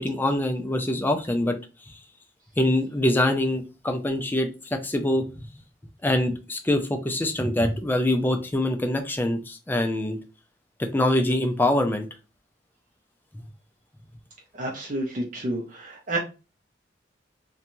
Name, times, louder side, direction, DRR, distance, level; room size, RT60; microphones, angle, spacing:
voice 1, 0.0-1.6 1.9-2.0 2.6-5.2 6.0-10.2 10.8-12.1, left 1 dB, 10° left, 5 dB, 0.4 m, -24 dB
voice 2, 14.6-16.2, right 1 dB, 45° right, -1 dB, 0.6 m, -30 dB
3.0 x 2.2 x 2.6 m, 0.31 s
head